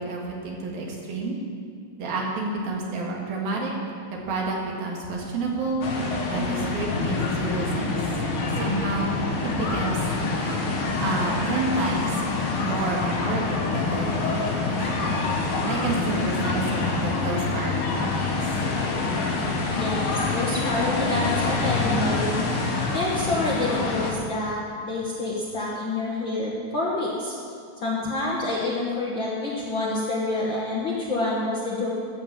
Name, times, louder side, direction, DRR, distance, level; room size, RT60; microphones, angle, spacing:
voice 1, 0.0-1.4 2.0-3.7 4.1-5.9 6.3-8.0 8.4-9.2 9.4-10.0 11.0-15.1 15.7-18.4, right 3 dB, 80° right, -2 dB, 3.7 m, -30 dB
sound 1, 5.8-24.1, left 3 dB, 90° left, 3.4 m, -26 dB
voice 2, 19.8-22.4 22.9-27.3 27.8-31.9, left 2 dB, 50° left, -5 dB, 1.5 m, -27 dB
13.5 x 7.4 x 7.4 m, 2.3 s
omnidirectional pair, 4.1 m